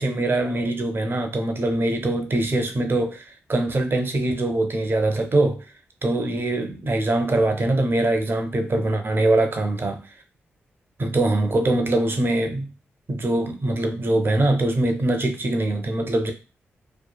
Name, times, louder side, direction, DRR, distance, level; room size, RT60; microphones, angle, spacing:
voice 1, 0.0-3.2 3.5-5.6 6.0-10.0 11.0-12.7 13.1-16.3, right 2 dB, 45° right, 0.6 m, -23 dB
2.9 x 2.2 x 2.3 m
supercardioid pair, 45°, 5 cm